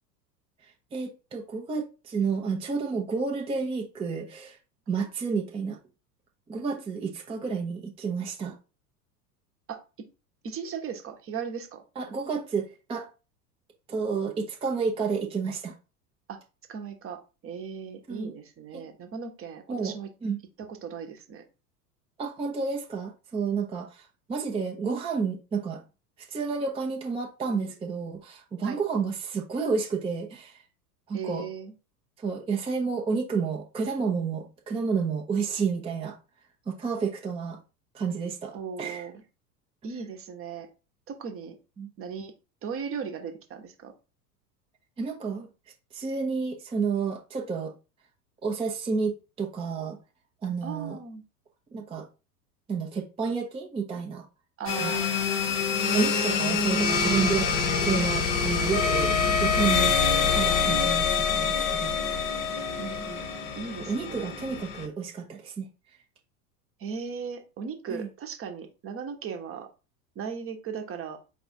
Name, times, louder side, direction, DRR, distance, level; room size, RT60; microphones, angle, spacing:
voice 1, 0.9-4.6 4.9-5.8 6.5-8.6 12.0-13.1 13.9-15.7 18.1-18.3 18.7-18.8 19.7-20.4 22.2-25.8 26.3-30.6 31.1-31.5 32.2-36.2 36.7-37.6 37.9-39.1 41.8-41.9 45.0-45.5 45.9-47.7 48.4-50.0 50.4-51.0 51.7-52.1 52.7-54.3 54.8-55.0 55.9-60.0 60.3-62.0 63.9-65.7 67.9-68.1, right 5 dB, 10° right, 0.6 m, -30 dB
voice 2, 10.4-11.8 16.3-16.4 16.7-17.2 17.4-20.1 20.7-21.4 28.6-28.8 31.1-31.7 38.5-39.2 39.8-40.7 41.1-41.6 42.0-42.3 42.6-43.9 50.6-51.2 54.6-55.1 62.8-63.2 63.6-64.3 66.8-69.7 70.1-71.2, right 6 dB, 25° right, 1.0 m, -37 dB
sound 1, 54.7-64.9, left 5 dB, 35° left, 1.0 m, -26 dB
Trumpet, 58.7-63.6, left 6 dB, 55° left, 0.6 m, -29 dB
4.3 x 2.3 x 4.2 m
figure-of-eight pair, 85°, 49 cm